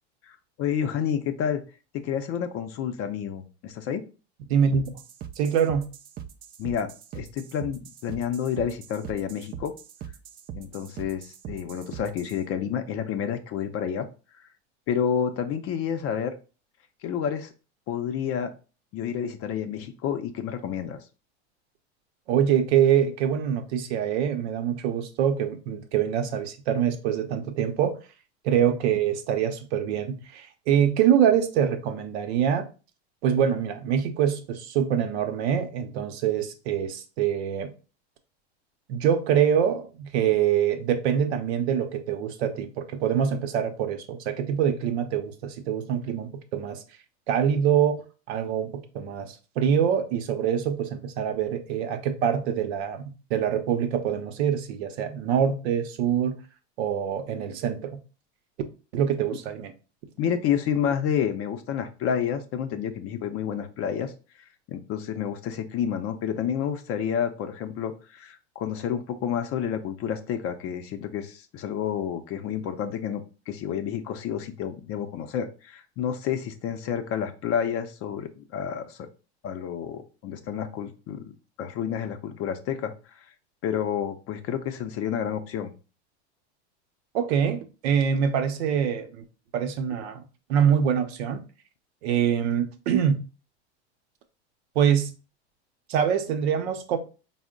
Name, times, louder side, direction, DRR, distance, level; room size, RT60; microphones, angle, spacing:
voice 1, 0.2-1.6 1.9-4.0 6.6-9.7 10.5-14.1 14.3-14.5 14.9-16.3 17.0-17.5 17.9-18.5 18.9-21.0 60.2-64.1 64.7-79.1 79.4-81.3 81.6-83.3 83.6-85.7, left 8 dB, 40° left, 0.5 m, -29 dB
voice 2, 4.5-5.0 5.4-5.9 22.3-28.0 28.4-32.7 33.2-37.7 38.9-46.8 47.3-56.4 56.8-58.0 58.9-59.7 87.1-89.2 89.5-91.4 92.0-93.2 94.8-95.1 95.9-97.0, right 8 dB, 70° right, 0.7 m, -25 dB
sound 1, 4.7-12.4, right 9 dB, 30° right, 0.4 m, -41 dB
4.2 x 2.1 x 3.6 m
hypercardioid pair, 95°, 34 cm